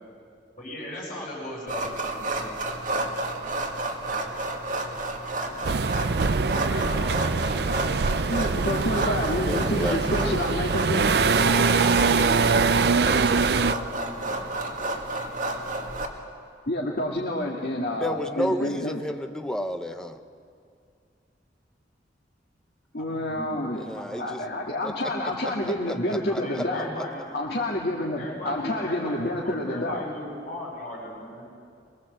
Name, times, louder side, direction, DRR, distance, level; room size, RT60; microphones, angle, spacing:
voice 1, 0.5-2.5 5.2-6.2 6.5-7.7 11.1-14.4 23.1-23.7 23.9-24.5 26.3-27.3 28.2-31.5, equal, 45° left, -4 dB, 8.0 m, -38 dB
sound 1, 1.7-16.1, right 2 dB, 45° right, 2.2 m, -31 dB
sound 2, 5.6-13.7, right 4 dB, 65° right, 0.5 m, -23 dB
voice 2, 8.3-11.2 16.7-19.0 22.9-23.8 24.1-26.9 27.3-30.0, left 1 dB, 60° left, -2 dB, 2.1 m, -28 dB
voice 3, 9.5-10.4 18.0-20.2 23.8-24.4 24.8-24.9 25.4-25.5 25.9-26.6, equal, 5° left, 6 dB, 1.0 m, -31 dB
23.5 x 22.5 x 7.9 m, 2.3 s
head